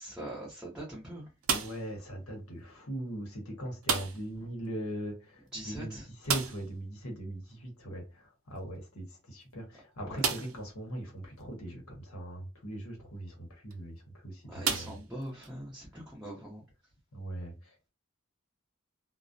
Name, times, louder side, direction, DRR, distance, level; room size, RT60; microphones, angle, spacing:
voice 1, 0.0-1.3 5.5-6.1 10.1-10.2 14.4-16.6, right 1 dB, 5° right, 0.6 m, -42 dB
sound 1, 1.4-2.0 3.8-4.4 4.6-4.7 5.1-5.2 6.2-6.8 8.6-8.7 9.3-9.4 10.2-10.7 11.4-11.5 13.5-13.7 14.6-15.5, right 6 dB, 65° right, 0.5 m, -32 dB
voice 2, 1.5-5.9 6.2-14.9 17.1-17.9, right 1 dB, 90° left, 1.0 m, -40 dB
2.3 x 2.0 x 2.6 m
head